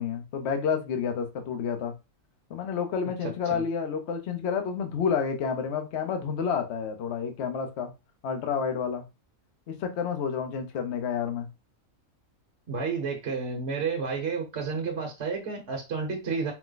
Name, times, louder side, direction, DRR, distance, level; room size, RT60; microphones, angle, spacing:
voice 1, 0.0-1.9 2.5-7.9 8.2-9.0 9.7-11.5, left 6 dB, 55° left, 0.9 m, -29 dB
voice 2, 12.7-16.5, right 5 dB, 55° right, 1.2 m, -31 dB
4.7 x 2.1 x 3.8 m
omnidirectional pair, 1.5 m